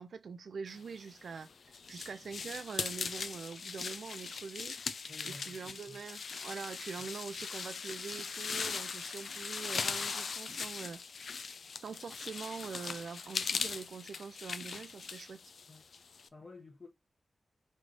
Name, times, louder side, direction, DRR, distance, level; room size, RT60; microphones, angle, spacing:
voice 1, 0.0-1.5 1.9-11.5 11.8-15.4, right 5 dB, 75° right, 0.4 m, -44 dB
sound 1, 1.1-16.3, left 5 dB, 65° left, 0.3 m, -40 dB
voice 2, 5.1-6.0 15.7-15.9 16.3-16.9, left 3 dB, 30° left, 0.9 m, -52 dB
3.2 x 3.2 x 3.9 m
wide cardioid pair, 170°, 0 cm